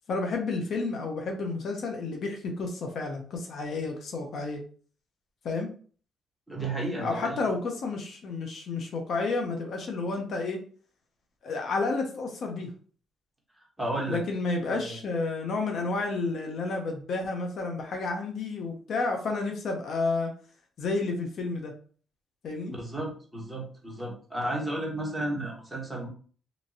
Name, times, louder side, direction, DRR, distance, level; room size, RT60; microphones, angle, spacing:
voice 1, 0.1-4.6 5.4-5.7 7.0-10.6 11.4-12.7 14.1-20.3 20.8-21.7 22.4-22.7, left 3 dB, 65° left, 2 dB, 0.6 m, -31 dB
voice 2, 6.5-7.4 13.8-14.2 14.7-15.0 22.7-26.1, right 1 dB, 5° right, -2 dB, 1.3 m, -33 dB
2.9 x 2.6 x 2.7 m, 0.42 s
cardioid pair, 90°, 0 cm